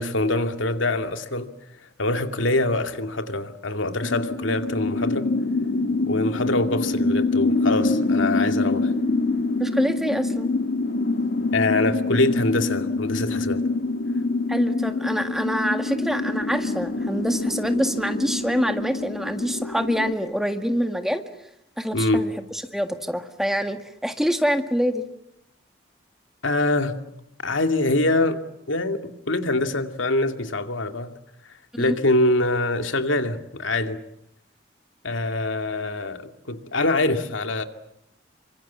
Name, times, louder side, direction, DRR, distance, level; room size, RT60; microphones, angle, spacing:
voice 1, 0.0-1.5 2.0-5.3 6.1-8.9 11.5-13.6 21.9-22.2 26.4-27.0 27.4-28.4 28.7-31.1 31.8-34.0 35.0-37.6, left 2 dB, 85° left, 2.4 m, -24 dB
sound 1, 4.0-20.1, left 3 dB, 65° left, 1.7 m, -25 dB
voice 2, 9.6-10.5 14.5-21.2 21.8-25.0 31.7-32.0, equal, ahead, 1.8 m, -26 dB
28.5 x 25.0 x 7.4 m
head